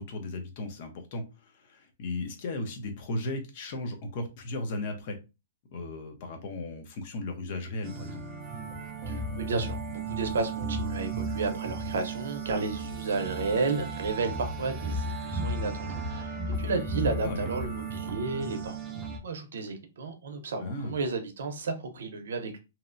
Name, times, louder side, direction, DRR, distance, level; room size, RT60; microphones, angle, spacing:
voice 1, 0.0-5.2 5.7-8.2 17.2-17.5 20.6-21.0, left 2 dB, 40° left, 0.6 m, -36 dB
sound 1, 7.8-19.2, right 2 dB, 15° right, 0.4 m, -34 dB
voice 2, 9.1-22.6, right 3 dB, 75° right, 0.6 m, -32 dB
2.8 x 2.1 x 2.4 m
hypercardioid pair, 165°, 0 cm